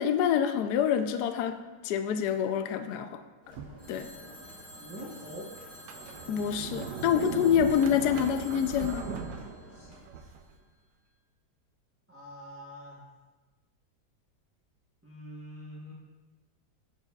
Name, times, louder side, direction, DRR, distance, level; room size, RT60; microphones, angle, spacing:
voice 1, 0.0-3.2 3.9-4.1 6.3-9.1, left 8 dB, 75° left, 8 dB, 1.1 m, -27 dB
sound 1, 3.4-10.0, equal, 35° right, 3.5 m, -52 dB
Sliding door, 3.5-4.4 5.0-5.1 5.7-10.5, right 6 dB, 80° right, 1.3 m, -39 dB
Telephone, 3.8-10.6, left 1 dB, 40° left, 1.7 m, -51 dB
voice 2, 4.8-5.5 9.7-9.9 12.1-13.0 15.0-15.9, equal, 10° right, -6 dB, 0.7 m, -44 dB
14.5 x 6.9 x 2.3 m, 1.3 s
omnidirectional pair, 1.9 m